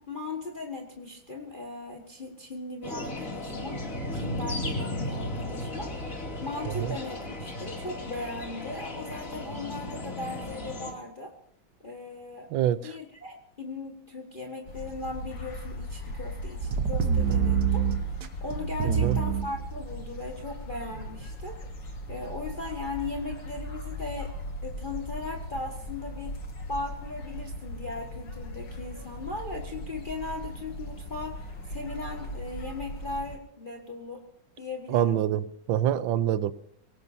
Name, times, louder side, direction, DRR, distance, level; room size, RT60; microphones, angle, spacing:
voice 1, 0.0-3.8 4.1-6.1 6.4-11.3 11.8-12.5 12.8-17.9 18.4-24.3 24.6-26.4 26.7-34.2 34.6-35.2, left 3 dB, 30° left, 1.6 m, -38 dB
sound 1, 2.8-10.9, left 1 dB, 45° left, 3.1 m, -35 dB
voice 2, 12.5-12.9 18.8-19.2 34.9-36.5, right 11 dB, 85° right, 1.5 m, -26 dB
sound 2, 14.7-33.4, left 1 dB, 70° left, 2.9 m, -39 dB
sound 3, 16.6-20.0 20.9-21.0, right 7 dB, 60° right, 1.5 m, -26 dB
24.0 x 18.0 x 2.7 m
omnidirectional pair, 2.1 m